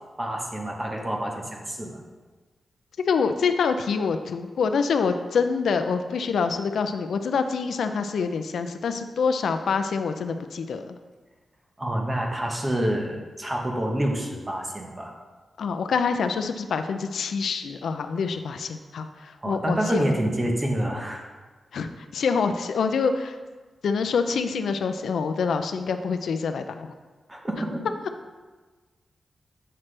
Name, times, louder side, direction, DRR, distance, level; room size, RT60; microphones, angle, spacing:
voice 1, 0.0-2.0 11.8-15.1 19.4-21.3 27.3-27.8, right 1 dB, 20° right, 1 dB, 0.9 m, -28 dB
voice 2, 3.1-10.9 15.6-19.1 19.5-20.0 21.7-21.9 22.1-23.3 23.8-26.9, left 5 dB, 80° left, 8 dB, 0.4 m, -26 dB
7.6 x 5.9 x 3.3 m, 1.3 s
wide cardioid pair, 145°, 0 cm